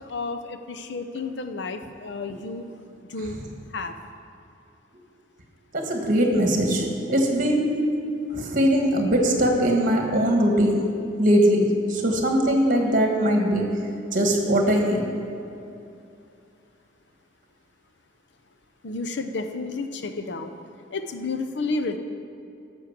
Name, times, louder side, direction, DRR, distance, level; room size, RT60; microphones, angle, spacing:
voice 1, 0.0-2.7 3.1-3.4 3.7-3.9 18.8-20.5 20.9-22.0, left 3 dB, 60° left, 7 dB, 0.7 m, -31 dB
voice 2, 5.7-7.7 8.3-10.8 11.2-13.7 14.1-15.0, equal, 45° right, 1 dB, 1.6 m, -21 dB
11.0 x 6.2 x 7.3 m, 2.6 s
head